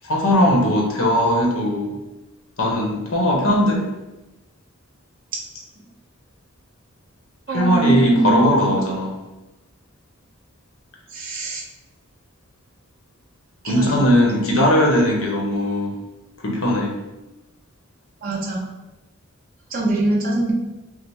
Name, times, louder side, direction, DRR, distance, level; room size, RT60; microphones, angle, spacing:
voice 1, 0.0-1.9 2.6-3.8 7.5-9.1 13.6-15.9 16.4-16.9, equal, 80° left, -1 dB, 1.0 m, -19 dB
voice 2, 7.5-8.8 11.1-11.6 13.6-14.0 18.2-18.7 19.7-20.5, right 2 dB, 40° right, -5 dB, 1.1 m, -22 dB
5.6 x 2.0 x 3.5 m, 1.0 s
head